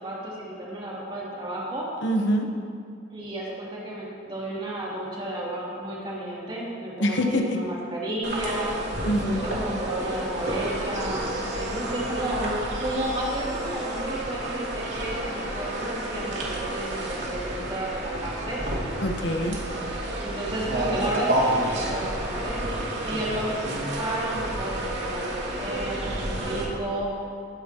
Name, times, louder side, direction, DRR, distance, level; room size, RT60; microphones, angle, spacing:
voice 1, 0.0-1.9 3.1-8.8 9.2-18.6 20.2-22.6 23.0-27.1, right 1 dB, 25° right, -6 dB, 2.9 m, -32 dB
voice 2, 2.0-2.5 7.0-7.6 8.4-8.5 9.0-9.5 19.0-19.6, equal, 65° left, 3 dB, 1.1 m, -25 dB
sound 1, 8.2-26.6, right 1 dB, 60° right, 2.6 m, -30 dB
21.5 x 10.5 x 3.0 m, 2.3 s
head